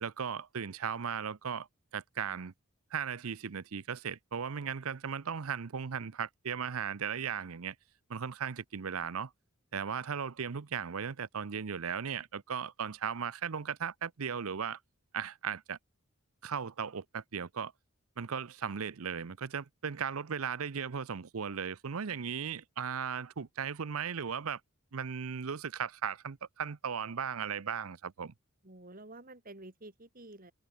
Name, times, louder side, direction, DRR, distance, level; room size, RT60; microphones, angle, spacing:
voice 1, 0.0-1.7 1.9-2.5 2.9-7.7 8.1-9.3 9.7-14.8 15.1-15.8 16.4-17.7 18.2-24.6 24.9-28.3, right 7 dB, 75° right, 0.7 m, -37 dB
voice 2, 28.6-30.5, right 2 dB, 40° right, 2.9 m, -50 dB
head